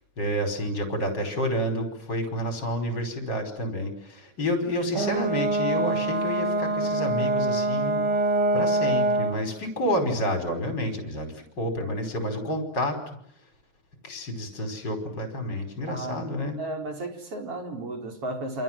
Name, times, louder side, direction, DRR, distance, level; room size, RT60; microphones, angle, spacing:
voice 1, 0.2-8.0 8.5-13.1 14.0-16.6, equal, 35° left, 6 dB, 5.7 m, -29 dB
Brass instrument, 4.9-9.4, right 2 dB, 90° right, 4.1 m, -25 dB
voice 2, 15.9-16.3 16.6-18.6, right 1 dB, 50° right, 4 dB, 5.5 m, -33 dB
29.0 x 27.0 x 7.7 m, 0.70 s
omnidirectional pair, 3.5 m